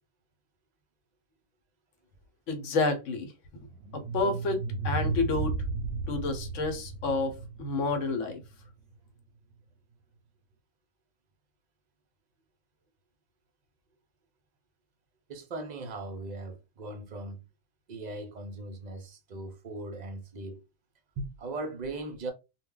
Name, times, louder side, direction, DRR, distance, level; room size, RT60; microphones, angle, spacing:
voice 1, 2.5-3.3 3.9-5.6 6.1-8.4, left 3 dB, 80° left, 1.0 m, -29 dB
sound 1, 3.6-8.7, right 3 dB, 85° right, 0.9 m, -34 dB
voice 2, 15.3-17.5 17.9-20.6 21.2-22.3, right 2 dB, 55° right, 0.5 m, -39 dB
2.2 x 2.1 x 3.6 m
omnidirectional pair, 1.3 m